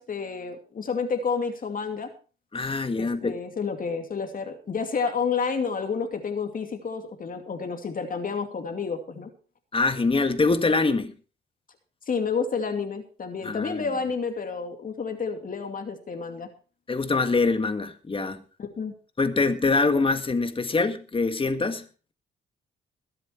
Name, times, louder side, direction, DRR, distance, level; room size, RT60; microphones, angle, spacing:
voice 1, 0.0-2.1 2.9-9.3 12.1-16.5 18.6-18.9, left 5 dB, 45° left, 2.6 m, -30 dB
voice 2, 2.5-3.3 9.7-11.1 13.4-13.8 16.9-18.4 19.2-21.8, left 3 dB, 25° left, 1.8 m, -24 dB
21.5 x 7.8 x 4.5 m
cardioid pair, 90°, 20 cm